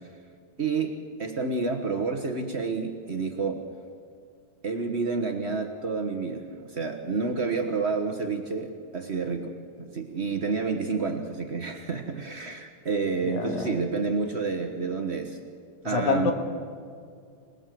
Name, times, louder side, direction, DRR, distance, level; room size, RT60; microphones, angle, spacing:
voice 1, 0.6-3.6 4.6-9.5 9.8-15.4 15.8-16.3, right 4 dB, 85° right, 4 dB, 0.5 m, -29 dB
voice 2, 13.2-13.8 15.8-16.3, left 5 dB, 75° left, 6 dB, 3.2 m, -27 dB
26.5 x 19.5 x 7.7 m, 2.3 s
omnidirectional pair, 3.4 m